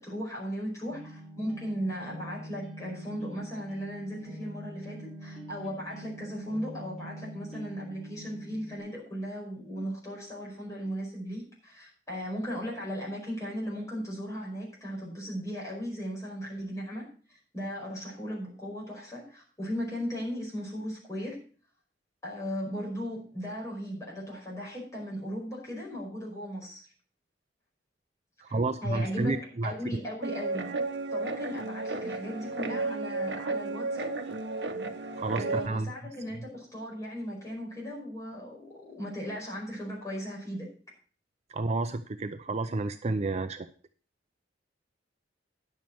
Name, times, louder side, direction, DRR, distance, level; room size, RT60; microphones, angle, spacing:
voice 1, 0.0-21.4 22.2-26.8 28.5-30.8 31.1-34.2 35.3-40.7, equal, 20° left, -4 dB, 5.1 m, -37 dB
sound 1, 0.9-8.8, right 1 dB, ahead, 3.8 m, -44 dB
voice 2, 28.4-29.7 35.2-35.9 41.5-43.7, right 3 dB, 35° right, 9 dB, 0.5 m, -30 dB
Guitar, 30.2-35.7, right 3 dB, 65° right, 1.1 m, -33 dB
10.0 x 7.3 x 6.1 m, 0.42 s
head